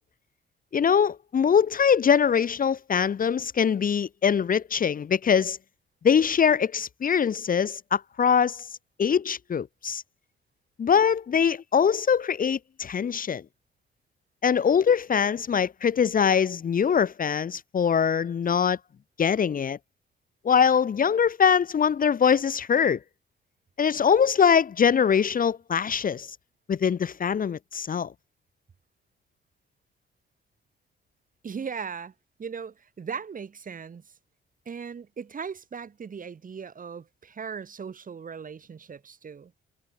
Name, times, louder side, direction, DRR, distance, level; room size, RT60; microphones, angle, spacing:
voice 1, 0.7-5.6 6.0-8.6 9.0-10.0 10.8-13.4 14.4-18.8 19.2-19.8 20.4-23.0 23.8-26.3 26.7-28.1, left 7 dB, 45° left, 1.4 m, -23 dB
voice 2, 31.4-32.1 32.4-34.1 34.7-39.5, right 6 dB, 45° right, 5.8 m, -38 dB
cardioid pair, 90°, 20 cm